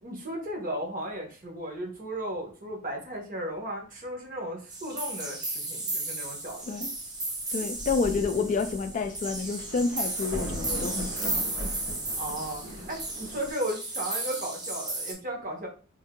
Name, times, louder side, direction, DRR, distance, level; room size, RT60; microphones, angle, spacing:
voice 1, 0.0-6.8 12.2-15.7, right 1 dB, 40° right, 1.1 m, -35 dB
sound 1, 4.7-15.1, right 2 dB, 20° right, 0.9 m, -34 dB
Thunder, 7.4-7.5 7.7-13.5, equal, 65° right, 1.7 m, -39 dB
voice 2, 7.5-11.3, left 4 dB, 40° left, 0.3 m, -29 dB
3.5 x 2.7 x 3.6 m
head